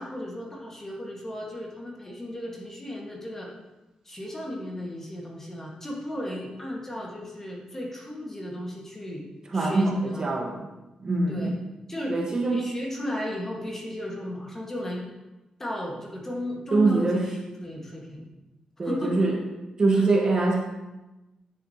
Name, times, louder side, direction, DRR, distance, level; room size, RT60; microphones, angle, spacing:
voice 1, 0.0-3.5 4.0-9.2 9.5-10.2 11.3-11.5 11.9-12.2 12.5-15.0 15.6-18.3 18.8-19.3 19.9-20.0, left 1 dB, 20° left, -2 dB, 1.5 m, -35 dB
voice 2, 9.5-10.7 11.0-11.6 12.1-12.6 16.7-17.3 18.8-19.4 19.8-20.6, right 3 dB, 35° right, 0 dB, 1.2 m, -23 dB
9.8 x 6.6 x 2.8 m, 1.0 s
wide cardioid pair, 130°, 2 cm